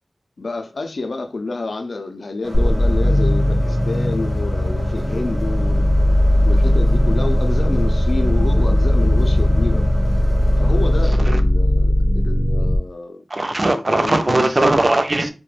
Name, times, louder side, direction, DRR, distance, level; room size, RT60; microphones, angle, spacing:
voice 1, 0.4-5.9 6.5-9.9 10.6-13.2 13.5-13.6 13.9-14.5, left 3 dB, 80° left, 0.4 m, -28 dB
sound 1, 2.4-11.1, right 1 dB, 80° right, 0.9 m, -34 dB
sound 2, 2.5-12.8, left 1 dB, 35° left, 0.6 m, -17 dB
voice 2, 13.3-15.3, right 2 dB, 45° right, 0.4 m, -18 dB
2.3 x 2.1 x 3.1 m
wide cardioid pair, 60°, 0 cm